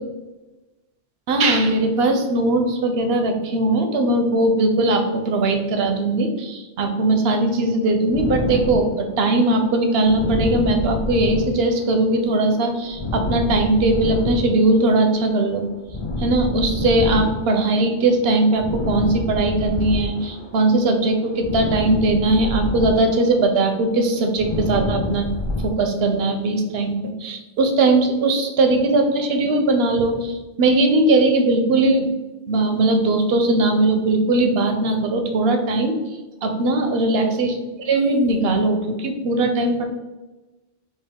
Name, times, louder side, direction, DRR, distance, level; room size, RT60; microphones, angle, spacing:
voice 1, 1.3-15.7 16.2-25.3 25.6-32.1 32.5-35.9 36.4-37.6 37.9-39.8, right 2 dB, 65° right, 5 dB, 0.8 m, -19 dB
sound 1, 8.1-20.7 21.0-25.7, left 2 dB, 40° left, 0.4 m, -28 dB
5.4 x 2.4 x 3.5 m, 1.1 s
omnidirectional pair, 1.2 m